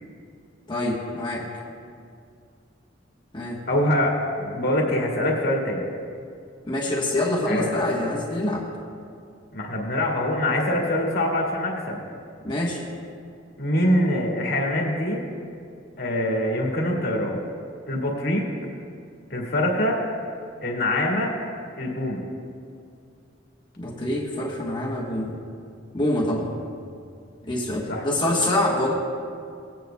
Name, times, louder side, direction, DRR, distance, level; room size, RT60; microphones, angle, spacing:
voice 1, 0.7-1.5 3.3-3.6 6.6-8.7 12.4-12.8 23.8-25.4 25.9-26.5 27.4-28.9, left 1 dB, 25° left, -4 dB, 1.2 m, -25 dB
voice 2, 3.7-5.8 7.5-7.8 9.5-12.0 13.6-15.2 16.0-17.4 17.9-18.5 19.3-20.0 20.6-21.3 21.8-22.2 27.9-28.0, left 1 dB, 55° left, -2 dB, 1.9 m, -24 dB
18.5 x 9.3 x 2.3 m, 2.3 s
head